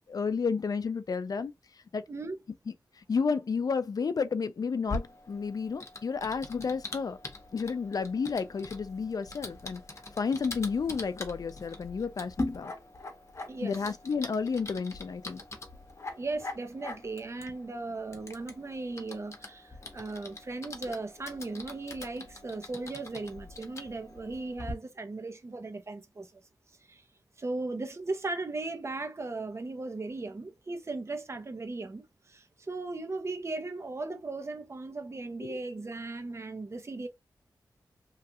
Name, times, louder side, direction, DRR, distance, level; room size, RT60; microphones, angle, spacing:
voice 1, 0.1-1.5 1.9-2.0 2.7-7.2 7.5-9.8 10.2-12.7 13.6-15.4, left 5 dB, 60° left, 0.4 m, -31 dB
Typing, 4.9-24.7, left 2 dB, 45° left, 0.9 m, -43 dB
voice 2, 13.5-13.8 16.2-26.4 26.9-27.0 27.4-37.1, right 3 dB, 40° right, 0.7 m, -37 dB
3.2 x 2.3 x 2.7 m
wide cardioid pair, 85°, 7 cm